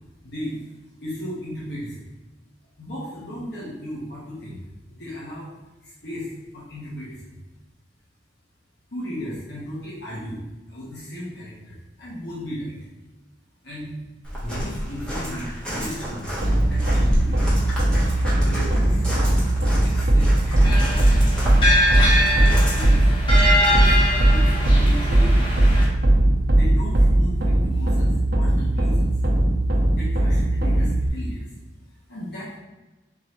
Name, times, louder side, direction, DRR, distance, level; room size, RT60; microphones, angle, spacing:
voice 1, 0.2-0.7 1.0-2.0 2.8-4.6 4.9-5.5 5.8-7.2 8.9-12.8 13.6-13.9 14.4-17.4 18.4-19.3 19.8-21.5 22.2-23.1 23.6-24.0 24.3-25.7 26.5-29.1 29.9-31.5 32.1-32.6, equal, 65° left, -7 dB, 1.3 m, -35 dB
Walk footsteps, 14.2-22.8, equal, 5° left, 1.3 m, -30 dB
sound 1, 16.4-31.1, right 1 dB, 55° right, 0.6 m, -19 dB
sound 2, 20.6-25.8, left 1 dB, 30° left, 0.9 m, -23 dB
3.8 x 3.8 x 3.2 m, 1.1 s
head